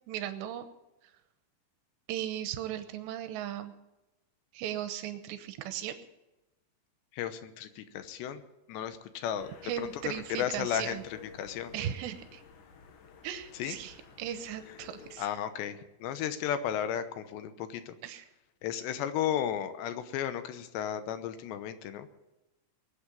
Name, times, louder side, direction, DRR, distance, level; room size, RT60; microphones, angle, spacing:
voice 1, 0.1-0.7 2.1-3.7 4.5-6.0 9.6-11.0 11.7-12.4 13.2-15.3 18.0-18.3, right 10 dB, 85° right, 9 dB, 3.1 m, -37 dB
voice 2, 7.1-8.4 8.7-9.5 9.8-11.7 13.5-13.8 15.2-18.0 18.6-22.1, left 10 dB, 85° left, 11 dB, 3.1 m, -34 dB
sound 1, 9.4-15.2, left 6 dB, 60° left, 2.4 m, -52 dB
21.5 x 8.6 x 7.1 m, 0.99 s
omnidirectional pair, 5.0 m